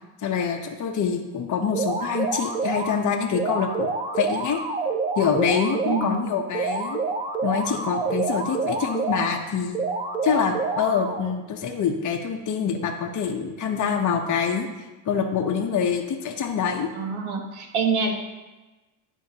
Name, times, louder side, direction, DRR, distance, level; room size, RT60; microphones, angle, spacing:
voice 1, 0.2-3.9 4.2-4.6 5.2-7.0 7.4-9.8 10.2-14.7 15.1-16.9, left 6 dB, 40° left, 2 dB, 0.8 m, -25 dB
sound 1, 1.7-2.9 3.3-6.1 6.5-9.3 9.7-11.3, right 4 dB, 10° right, 0.4 m, -28 dB
voice 2, 5.8-6.2 16.9-18.1, right 5 dB, 75° right, 2 dB, 1.3 m, -26 dB
10.5 x 3.6 x 2.8 m, 1.1 s
cardioid pair, 95°, 49 cm